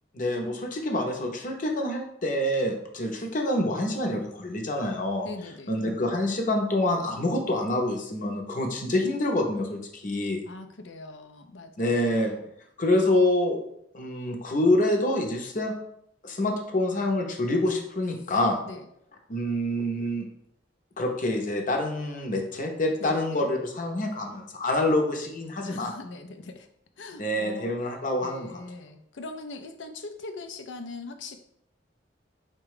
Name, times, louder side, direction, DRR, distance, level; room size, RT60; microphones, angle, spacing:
voice 1, 0.1-5.3 5.7-10.4 11.8-12.3 12.8-13.6 13.9-15.7 16.2-18.6 19.3-20.2 21.0-25.9 27.2-28.6, left 1 dB, 45° left, 3 dB, 0.8 m, -26 dB
voice 2, 5.2-5.7 10.5-12.4 18.7-18.9 23.0-23.5 25.6-26.7 27.0-27.7 28.2-31.4, left 3 dB, 85° left, 7 dB, 0.5 m, -41 dB
4.9 x 2.3 x 4.8 m, 0.73 s
head